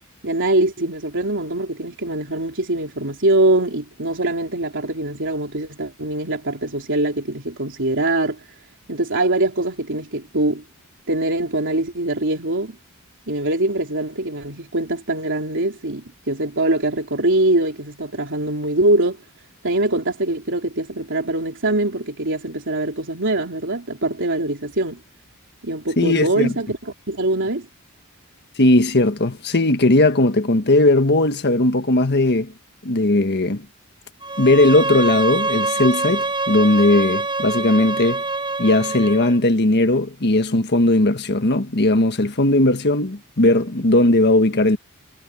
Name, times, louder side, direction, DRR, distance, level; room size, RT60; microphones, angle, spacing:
voice 1, 0.2-8.5 8.9-10.6 11.1-12.8 13.3-19.2 19.6-25.0 25.6-26.8 27.1-27.7, right 2 dB, 60° right, 3.6 m, -23 dB
voice 2, 26.0-26.5 28.6-32.5 32.8-33.6 34.4-38.2 38.6-44.8, left 2 dB, 50° left, 1.5 m, -17 dB
Bowed string instrument, 34.2-39.4, right 3 dB, 25° right, 5.3 m, -25 dB
head